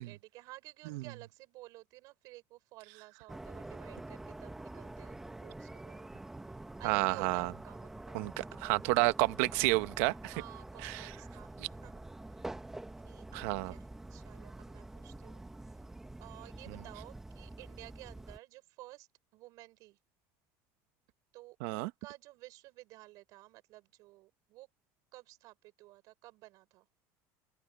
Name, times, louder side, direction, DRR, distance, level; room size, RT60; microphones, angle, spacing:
voice 1, 0.0-6.1 6.8-8.6 10.3-12.6 13.0-13.8 14.1-15.5 16.2-20.0 21.3-24.7 25.1-26.9, right 19 dB, 50° right, 6.2 m, -54 dB
sound 1, 3.3-18.4, right 2 dB, 5° right, 1.2 m, -47 dB
voice 2, 6.8-7.5 8.1-10.3 10.8-11.1 13.3-13.7 21.6-21.9, right 21 dB, 75° right, 1.1 m, -30 dB
open air
cardioid pair, 170°, 7 cm